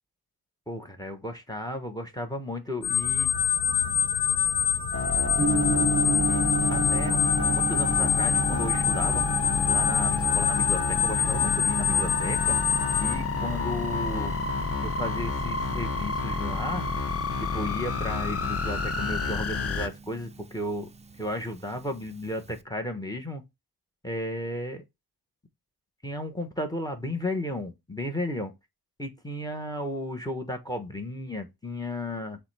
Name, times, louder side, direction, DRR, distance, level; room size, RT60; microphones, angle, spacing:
voice 1, 0.7-3.3 6.3-9.4 9.7-12.6 13.0-14.3 14.8-16.9 17.4-20.9 21.2-23.4 24.0-24.8 26.0-28.5 29.0-32.4, left 1 dB, 10° left, 1.0 m, -34 dB
sound 1, 2.8-13.1, left 7 dB, 85° left, 1.2 m, -26 dB
sound 2, 4.9-19.9, left 4 dB, 35° left, 0.8 m, -30 dB
Gong, 5.4-22.6, right 3 dB, 20° right, 0.3 m, -34 dB
6.7 x 2.3 x 3.2 m
cardioid pair, 90°, 41 cm